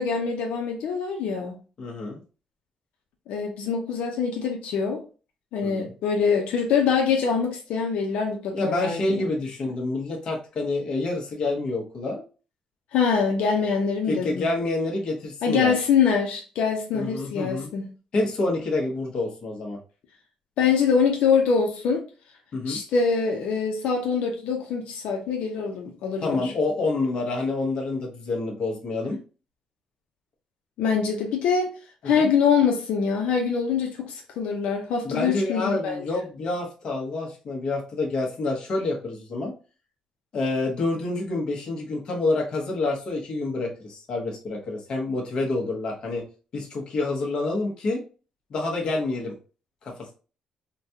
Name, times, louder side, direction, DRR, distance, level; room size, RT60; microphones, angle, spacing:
voice 1, 0.0-1.5 3.3-5.0 5.5-9.3 12.9-14.4 15.4-17.8 20.6-22.0 22.7-26.5 30.8-31.7 32.0-36.0, left 6 dB, 85° left, 0.6 m, -24 dB
voice 2, 1.8-2.2 5.6-5.9 8.5-12.2 14.1-15.7 16.9-17.7 18.1-19.8 22.5-22.8 26.2-29.2 32.1-32.3 35.0-39.5 40.3-46.2 46.5-48.0 48.5-49.4 49.8-50.1, left 2 dB, 45° left, 1.0 m, -28 dB
3.9 x 2.2 x 2.8 m
cardioid pair, 165°, 2 cm